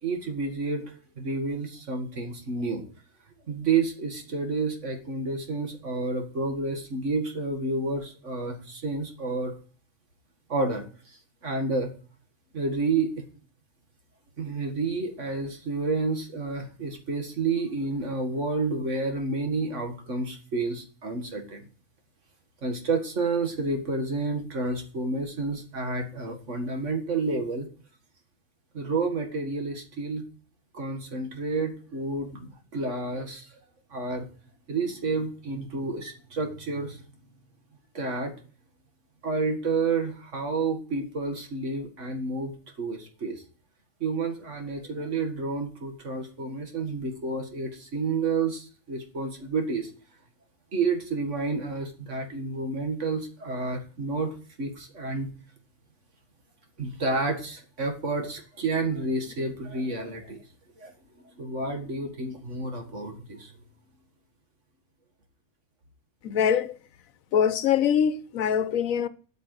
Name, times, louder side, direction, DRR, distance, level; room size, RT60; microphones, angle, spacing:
voice 1, 0.0-2.8 3.5-9.5 10.5-10.8 11.4-11.9 12.5-13.2 14.4-21.6 22.6-27.7 28.7-30.2 30.7-33.5 33.9-34.3 34.7-37.0 37.9-38.3 39.2-43.4 44.0-49.9 50.7-55.3 56.8-60.4 60.8-60.9 61.4-63.5, right 3 dB, 60° right, 2.1 m, -30 dB
voice 2, 66.2-66.8 67.3-69.1, left 8 dB, 80° left, 1.2 m, -23 dB
8.6 x 6.6 x 8.0 m
omnidirectional pair, 1.4 m